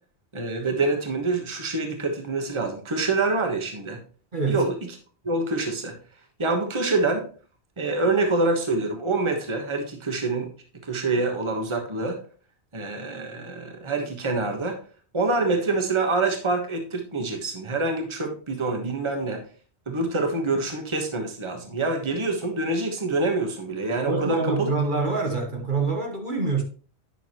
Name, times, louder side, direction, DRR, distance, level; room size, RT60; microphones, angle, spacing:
voice 1, 0.3-4.0 4.5-4.7 5.2-5.9 6.4-7.2 7.8-10.5 10.8-12.2 12.7-14.8 15.1-19.4 19.9-24.7, right 3 dB, 25° right, 1.4 m, -26 dB
voice 2, 4.3-4.7 24.1-26.6, right 4 dB, 45° right, 1.5 m, -25 dB
9.9 x 6.3 x 3.1 m
omnidirectional pair, 1.1 m